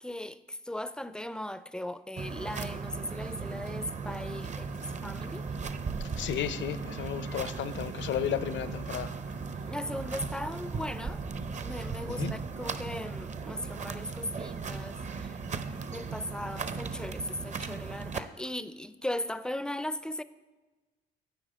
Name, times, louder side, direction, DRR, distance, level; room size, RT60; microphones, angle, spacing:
voice 1, 0.0-5.5 9.6-11.2 11.6-15.4 15.9-20.2, left 1 dB, 5° left, 0.4 m, -38 dB
sound 1, 2.2-18.2, right 4 dB, 35° right, 0.6 m, -37 dB
voice 2, 6.2-9.1 12.1-12.3, left 10 dB, 70° left, 0.5 m, -33 dB
9.0 x 4.9 x 7.4 m
cardioid pair, 90°, 20 cm